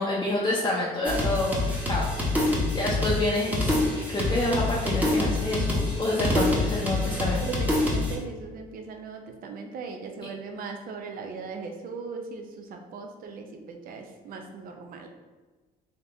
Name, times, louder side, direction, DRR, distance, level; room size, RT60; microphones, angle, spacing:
voice 1, 0.0-1.6 1.9-7.4, left 1 dB, 25° left, -5 dB, 0.6 m, -28 dB
sound 1, 1.0-8.1, left 2 dB, 10° right, 0.9 m, -26 dB
voice 2, 7.4-15.1, right 4 dB, 60° right, 4 dB, 0.6 m, -38 dB
3.9 x 2.7 x 3.4 m, 1.3 s
cardioid pair, 110°, 17 cm